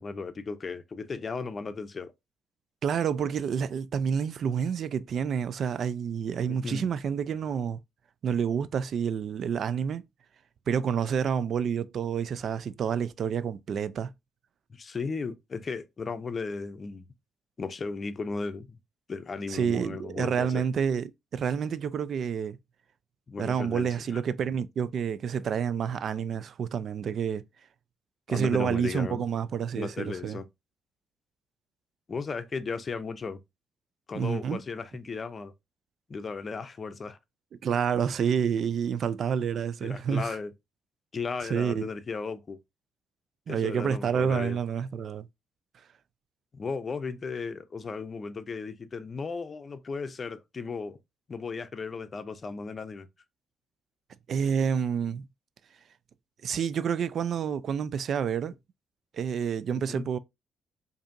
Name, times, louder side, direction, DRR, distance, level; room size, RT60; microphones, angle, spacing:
voice 1, 0.0-2.1 6.5-6.9 14.7-17.1 17.6-18.8 19.1-20.6 23.3-24.2 28.3-29.3 29.7-30.5 32.1-33.4 34.1-35.5 36.1-37.2 39.8-40.5 41.1-42.6 43.5-44.6 46.5-51.0 51.3-53.1 59.7-60.1, left 4 dB, 40° left, 0.5 m, -35 dB
voice 2, 2.8-7.8 8.2-10.0 10.7-14.1 19.5-22.6 23.4-27.4 28.3-30.4 34.1-34.6 37.6-40.4 41.4-41.9 43.5-45.3 54.3-55.3 56.4-58.5 59.1-60.2, right 7 dB, 60° right, 0.3 m, -29 dB
4.9 x 2.7 x 2.5 m
cardioid pair, 90°, 0 cm